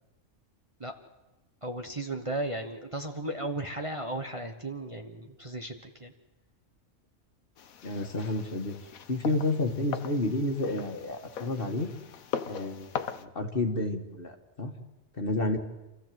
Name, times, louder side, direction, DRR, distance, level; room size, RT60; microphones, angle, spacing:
voice 1, 1.6-6.1, right 1 dB, 25° right, 4 dB, 1.3 m, -35 dB
sound 1, 7.6-13.2, left 7 dB, 90° left, 1.4 m, -40 dB
voice 2, 7.8-8.8 9.1-11.9 12.5-14.7 15.1-15.6, left 2 dB, 45° left, 4 dB, 2.0 m, -30 dB
28.0 x 15.0 x 7.7 m, 1.1 s
omnidirectional pair, 1.4 m